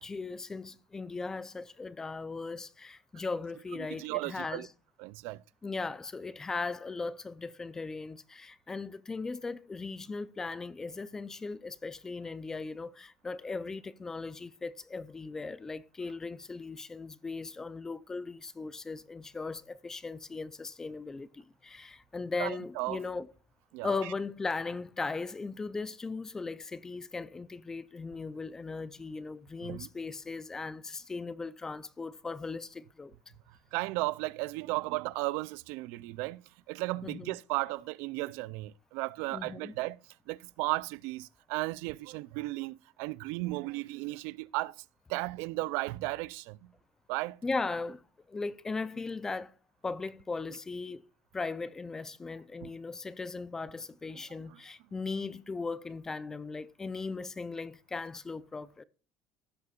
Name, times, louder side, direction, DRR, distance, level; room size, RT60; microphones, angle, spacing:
voice 1, 0.0-4.7 5.6-23.3 23.8-33.2 37.0-37.4 39.3-39.8 47.4-48.0 48.3-49.5 49.8-51.0 51.3-58.8, left 4 dB, 15° left, 0.4 m, -38 dB
voice 2, 3.9-4.7 5.0-5.4 22.4-23.0 23.7-23.9 29.6-29.9 33.7-36.4 36.7-40.0 40.3-44.7 45.1-46.6 47.1-47.4 52.6-52.7, right 21 dB, 70° right, 0.3 m, -35 dB
15.5 x 6.7 x 2.3 m
cardioid pair, 165°, 4 cm